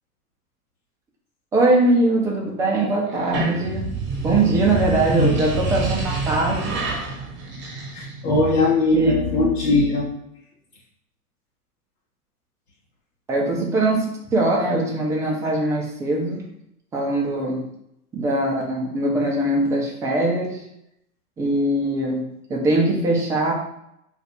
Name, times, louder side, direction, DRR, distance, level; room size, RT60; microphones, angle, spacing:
voice 1, 1.5-3.9 4.2-6.8 8.5-8.7 8.9-9.1 13.3-14.0 14.3-16.5 16.9-17.6 18.1-20.6 21.4-22.2 22.5-23.5, right 2 dB, 5° right, -2 dB, 0.4 m, -21 dB
sound 1, 3.1-8.4, right 3 dB, 25° right, 0.9 m, -27 dB
voice 2, 7.9-10.1, left 2 dB, 75° left, -7 dB, 1.0 m, -20 dB
2.5 x 2.4 x 4.1 m, 0.78 s
hypercardioid pair, 100°, 46 cm